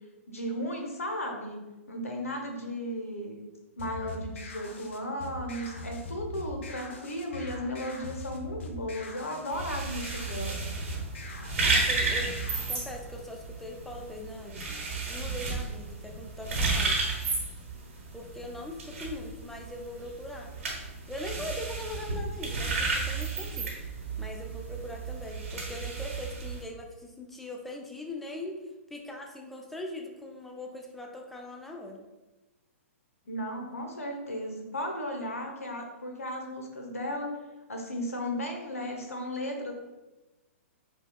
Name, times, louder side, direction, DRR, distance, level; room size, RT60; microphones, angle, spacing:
voice 1, 0.3-1.6 1.9-3.4 3.8-10.6 33.3-37.4 37.7-39.7, equal, 85° left, 2 dB, 0.8 m, -35 dB
sound 1, 3.8-12.8, left 1 dB, 55° left, 0.6 m, -41 dB
sound 2, 9.5-26.6, right 3 dB, 70° right, 1.0 m, -33 dB
voice 2, 11.6-14.7 15.1-17.1 18.1-20.5 21.1-23.7 24.2-28.6 28.9-32.0, left 1 dB, ahead, 1 dB, 0.4 m, -41 dB
5.0 x 2.3 x 2.2 m, 1.1 s
hypercardioid pair, 120°, 8 cm